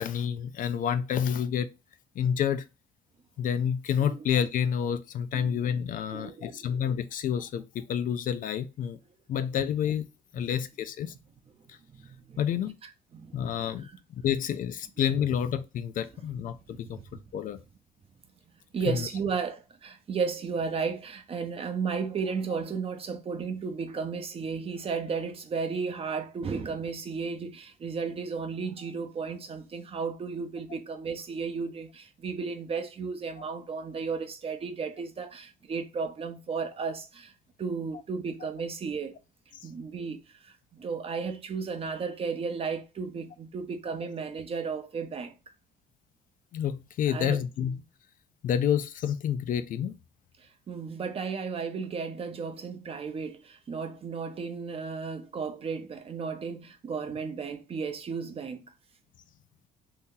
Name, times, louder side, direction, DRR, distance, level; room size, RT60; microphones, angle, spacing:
voice 1, 0.0-1.7 2.2-2.6 3.4-9.0 9.3-10.1 10.3-11.1 12.4-12.7 13.3-17.0 17.3-17.6 18.9-19.1 46.5-47.8 48.4-49.9, left 8 dB, 55° left, 0.4 m, -29 dB
voice 2, 6.1-6.8 10.4-10.7 11.9-13.5 13.8-14.0 16.7-17.2 18.7-37.3 37.6-39.2 39.6-45.3 47.1-47.4 50.4-58.6, right 5 dB, 35° right, 0.6 m, -34 dB
2.8 x 2.7 x 3.7 m
cardioid pair, 110°, 17 cm